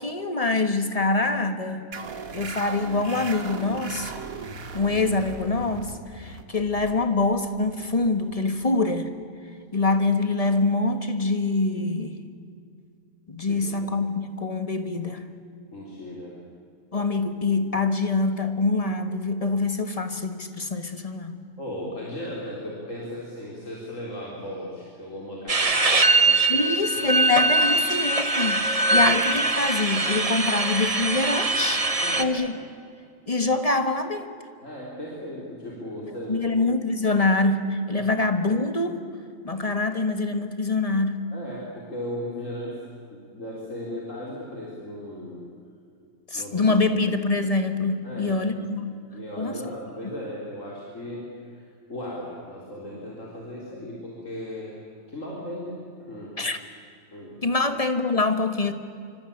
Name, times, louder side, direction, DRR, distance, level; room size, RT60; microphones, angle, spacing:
voice 1, 0.0-1.8 2.3-4.1 4.7-9.1 9.7-12.2 13.3-15.2 16.9-21.4 26.5-31.9 32.2-32.6 33.3-34.3 36.3-39.0 39.4-41.2 46.3-48.9 49.4-49.7 56.4-56.6 57.4-58.7, left 3 dB, 25° left, 8 dB, 1.6 m, -25 dB
sound 1, 1.9-9.0, right 4 dB, 75° right, 2.0 m, -38 dB
voice 2, 13.4-13.9 15.7-16.4 21.6-27.2 28.9-29.0 32.0-32.3 34.6-36.6 37.9-38.0 41.3-42.8 43.1-45.4 46.3-47.0 48.0-48.4 49.1-51.6 51.9-54.7 55.1-56.4 57.1-57.6, left 1 dB, 60° left, -4 dB, 4.3 m, -37 dB
sound 2, 25.5-32.2, right 2 dB, 25° right, 1.3 m, -22 dB
26.5 x 25.0 x 8.7 m, 2.3 s
omnidirectional pair, 1.5 m